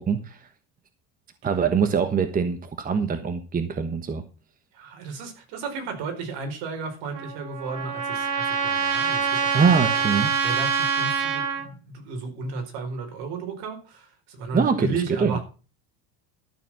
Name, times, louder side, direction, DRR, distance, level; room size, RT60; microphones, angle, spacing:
voice 1, 0.1-0.4 1.4-4.2 9.5-10.3 14.5-15.0 15.2-15.4, right 6 dB, 20° right, 1.2 m, -23 dB
voice 2, 4.7-9.9 10.4-15.4, right 4 dB, 70° right, 4.6 m, -34 dB
Trumpet, 7.1-11.7, right 6 dB, 50° right, 2.8 m, -25 dB
12.5 x 6.9 x 6.2 m
supercardioid pair, 135°, 42 cm